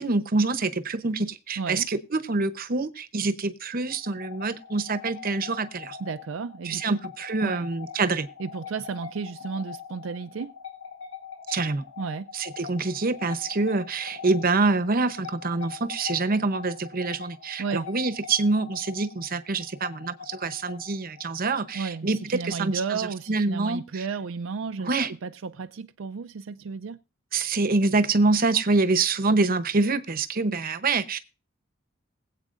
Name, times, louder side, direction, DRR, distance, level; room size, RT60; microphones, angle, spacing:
voice 1, 0.0-6.0 6.6-8.3 11.5-11.8 12.3-24.0 24.8-25.1 27.3-31.2, right 3 dB, 50° right, 0.9 m, -26 dB
voice 2, 1.6-1.9 6.0-7.0 7.4-7.7 8.4-10.5 12.0-12.3 17.6-17.9 21.7-24.9 25.2-27.0, right 5 dB, 75° right, 0.5 m, -33 dB
sound 1, 3.9-23.3, left 7 dB, 70° left, 4.0 m, -43 dB
21.0 x 8.2 x 2.5 m
head